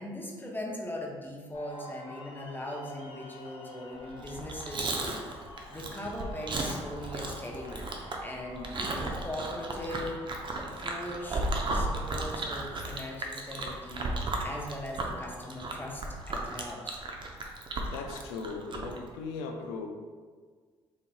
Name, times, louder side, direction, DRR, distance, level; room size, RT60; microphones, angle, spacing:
voice 1, 0.0-5.3 5.7-10.2 10.6-11.5 11.7-14.1 14.4-17.0, left 1 dB, 15° left, -1 dB, 0.7 m, -40 dB
sound 1, 1.5-19.3, left 2 dB, 50° left, 0.9 m, -51 dB
Chewing mastication, 4.2-19.0, right 2 dB, 40° right, 0.6 m, -35 dB
voice 2, 17.5-19.9, left 4 dB, 80° left, 3 dB, 0.4 m, -39 dB
3.9 x 2.9 x 2.2 m, 1.5 s
hypercardioid pair, 50°, 12 cm